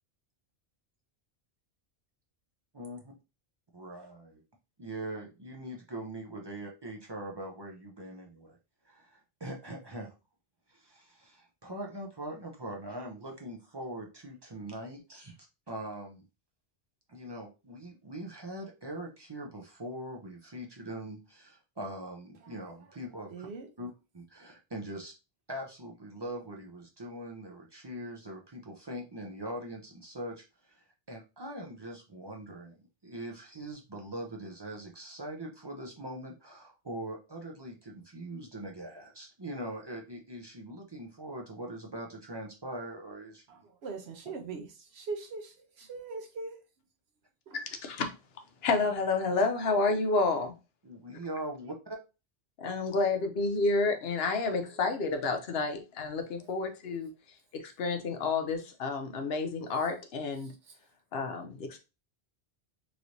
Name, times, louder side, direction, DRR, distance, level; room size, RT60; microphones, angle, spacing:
voice 1, 3.7-4.4 4.8-8.6 8.8-10.1 10.7-15.3 15.7-16.2 17.1-23.5 23.8-23.9 24.1-25.1 25.5-32.8 33.0-43.4 50.8-52.0, right 1 dB, 30° right, 0.5 m, -42 dB
voice 2, 23.3-23.7 43.5-46.6 47.5-47.6 55.7-55.8 56.4-56.5 57.8-57.9 60.4-60.7, right 4 dB, 80° right, 1.0 m, -41 dB
voice 3, 47.5-48.1 48.6-50.5 52.6-57.1 57.5-60.5 61.1-61.8, left 3 dB, 70° left, 0.9 m, -30 dB
3.1 x 3.0 x 2.6 m
omnidirectional pair, 1.1 m